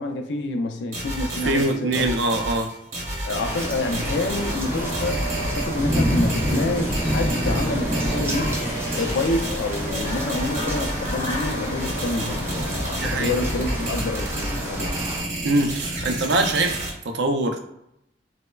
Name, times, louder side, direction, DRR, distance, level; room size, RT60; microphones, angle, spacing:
voice 1, 0.0-2.1 3.2-8.7 8.9-15.0, left 2 dB, 80° left, 6 dB, 0.4 m, -28 dB
sound 1, 0.9-16.9, right 1 dB, 45° right, 0.8 m, -31 dB
voice 2, 1.5-2.7 13.0-13.4 15.4-16.8 17.0-17.6, right 2 dB, 75° right, 4 dB, 0.4 m, -23 dB
sound 2, 3.3-15.3, equal, 60° left, 0.9 m, -33 dB
sound 3, 3.5-15.2, equal, 15° right, 0.4 m, -28 dB
3.1 x 2.0 x 2.2 m, 0.81 s
head